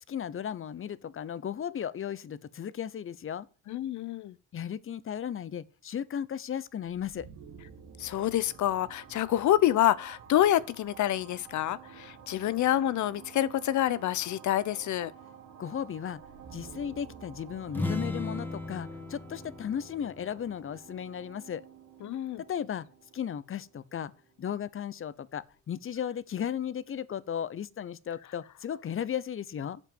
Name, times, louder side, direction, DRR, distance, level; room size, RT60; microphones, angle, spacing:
voice 1, 0.1-3.5 4.5-7.3 15.6-16.2 16.5-21.6 22.4-22.9 23.1-24.1 24.4-29.8, left 8 dB, 45° left, 0.8 m, -35 dB
voice 2, 3.7-4.4 8.0-15.1 22.0-22.4, left 12 dB, 70° left, 0.8 m, -27 dB
sound 1, 6.9-24.5, right 7 dB, 85° right, 2.6 m, -51 dB
sound 2, 17.7-21.4, left 2 dB, 5° left, 1.8 m, -37 dB
8.2 x 7.4 x 7.9 m
cardioid pair, 90°, 30 cm